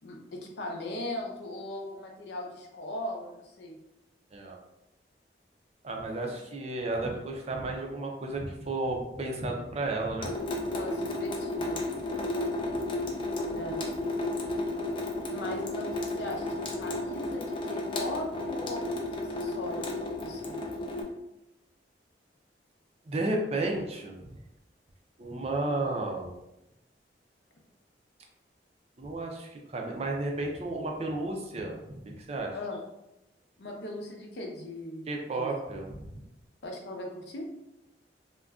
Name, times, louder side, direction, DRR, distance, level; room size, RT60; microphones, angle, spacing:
voice 1, 0.0-3.8 10.7-11.8 13.5-13.8 15.3-16.5 16.7-20.6 25.6-25.9 32.5-32.8 33.6-35.1 35.3-35.5 36.6-37.5, left 1 dB, 70° left, 1 dB, 0.6 m, -39 dB
voice 2, 5.8-10.3 12.1-12.3 23.1-24.3 25.2-26.3 29.0-32.5 35.1-36.1, right 2 dB, 35° right, 1 dB, 0.4 m, -33 dB
Water tap faucet / Sink (filling or washing) / Drip, 10.2-21.0, left 2 dB, 30° left, 0.4 m, -33 dB
2.4 x 2.1 x 3.5 m, 0.88 s
head